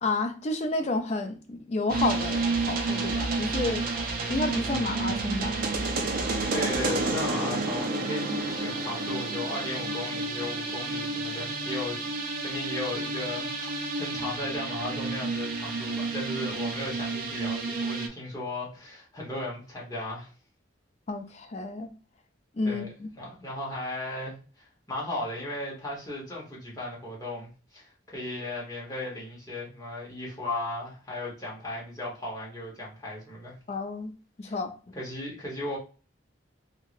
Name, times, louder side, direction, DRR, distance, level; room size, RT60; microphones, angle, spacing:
voice 1, 0.0-3.8 4.3-5.6 8.2-8.4 21.1-21.9 22.6-23.1 33.7-34.1 34.4-34.7, left 3 dB, 35° left, 0.4 m, -30 dB
sound 1, 1.9-18.1, right 3 dB, 45° right, 0.5 m, -30 dB
voice 2, 6.5-12.0 12.4-20.3 22.6-22.9 23.2-33.5 34.4-34.5 34.9-35.8, left 2 dB, 20° left, 1.1 m, -36 dB
2.9 x 2.8 x 2.5 m
head